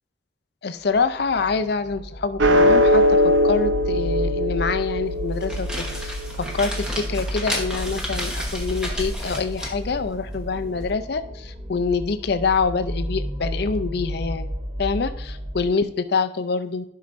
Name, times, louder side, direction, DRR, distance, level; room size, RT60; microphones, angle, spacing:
voice 1, 0.6-3.2 3.4-14.5 14.8-16.8, left 4 dB, 55° left, 10 dB, 0.5 m, -26 dB
sound 1, 0.9-15.7, equal, 30° right, 0.8 m, -33 dB
sound 2, 2.4-8.9, left 1 dB, 75° right, 0.7 m, -22 dB
sound 3, 5.2-10.9, equal, 5° right, 1.1 m, -32 dB
11.5 x 5.6 x 2.6 m, 0.74 s
head